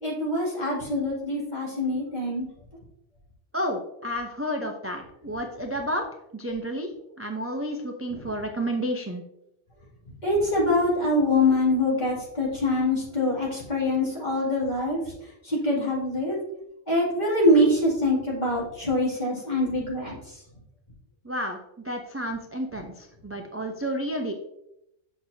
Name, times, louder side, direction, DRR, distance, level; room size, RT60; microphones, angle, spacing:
voice 1, 0.0-2.5 8.1-8.2 10.2-15.0 15.4-16.4 16.9-20.2, left 1 dB, 35° left, -5 dB, 2.5 m, -24 dB
voice 2, 3.5-6.0 6.3-6.9 7.2-9.2 21.2-21.6 21.8-24.3, equal, 20° right, 2 dB, 0.3 m, -31 dB
7.9 x 6.0 x 2.7 m, 0.82 s
omnidirectional pair, 1.3 m